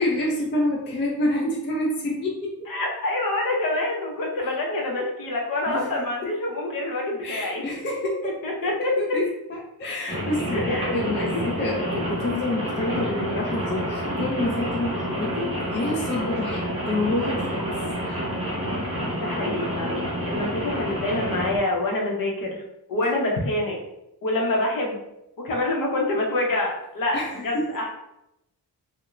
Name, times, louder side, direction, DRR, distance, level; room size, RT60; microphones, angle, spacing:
voice 1, 0.0-2.6 5.7-6.3 7.2-8.3 8.8-17.8 18.0-18.3 27.1-27.7, left 1 dB, 30° left, -2 dB, 0.4 m, -28 dB
voice 2, 2.7-7.6 8.2-8.7 10.5-11.3 19.1-22.6 22.9-23.8 24.2-25.0 25.4-27.9, left 2 dB, 55° left, -1 dB, 0.7 m, -26 dB
Rain, 10.1-21.6, equal, 15° right, 0.7 m, -28 dB
2.4 x 2.1 x 3.0 m, 0.86 s
wide cardioid pair, 145°, 41 cm